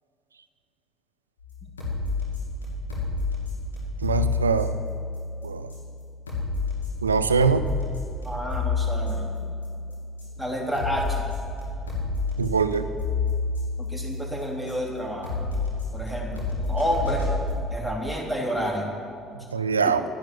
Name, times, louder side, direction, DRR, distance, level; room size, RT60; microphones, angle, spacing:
sound 1, 1.4-17.5, left 3 dB, 90° left, 2.9 m, -30 dB
voice 1, 4.0-4.7 5.4-5.7 7.0-7.7 12.4-12.9 19.5-20.0, right 5 dB, 90° right, 11 dB, 0.4 m, -23 dB
voice 2, 8.2-9.3 10.4-11.2 13.8-15.4 15.9-17.2 17.7-18.9 19.8-19.9, equal, ahead, -1 dB, 3.3 m, -29 dB
13.0 x 10.5 x 7.7 m, 2.5 s
figure-of-eight pair, 55°, 0 cm